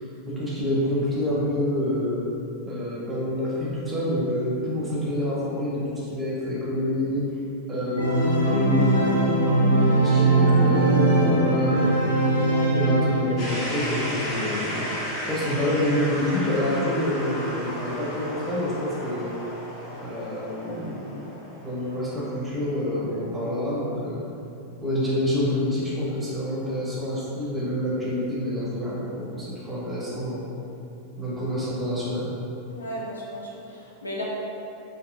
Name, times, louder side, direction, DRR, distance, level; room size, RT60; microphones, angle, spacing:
voice 1, 0.3-2.2 2.6-7.3 7.7-9.5 10.0-12.1 12.7-14.8 15.3-19.3 20.0-21.3 21.6-24.2 24.8-30.5 31.2-32.3, left 1 dB, 15° right, -7 dB, 0.6 m, -27 dB
Organ, 8.0-13.7, right 2 dB, 85° right, 0.4 m, -20 dB
sound 1, 13.4-23.2, equal, 35° left, 0.7 m, -34 dB
voice 2, 32.7-34.2, equal, 80° left, -5 dB, 0.5 m, -35 dB
2.7 x 2.7 x 2.3 m, 2.8 s
figure-of-eight pair, 90°, 0 cm